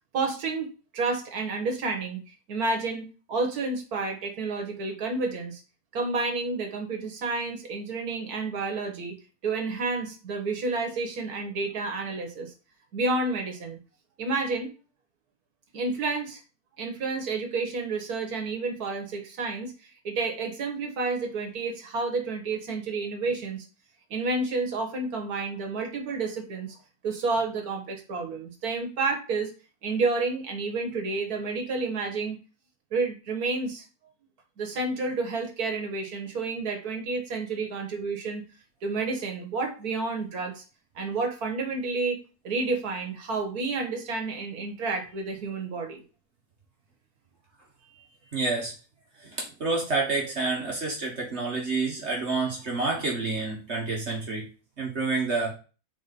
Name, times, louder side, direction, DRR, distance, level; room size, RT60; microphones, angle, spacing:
voice 1, 0.1-0.7 0.9-2.2 2.5-5.6 5.9-9.2 9.4-12.5 12.9-13.8 14.2-14.7 15.7-16.4 16.8-23.7 24.1-26.8 27.0-29.5 29.8-32.4 32.9-33.8 34.6-38.4 38.8-40.6 41.0-42.2 42.4-46.0 47.9-48.1, right 3 dB, 80° right, 3 dB, 1.8 m, -30 dB
voice 2, 48.3-48.7 49.2-54.4 54.8-55.6, right 3 dB, 50° right, -1 dB, 1.6 m, -28 dB
4.6 x 4.3 x 5.2 m, 0.34 s
omnidirectional pair, 1.6 m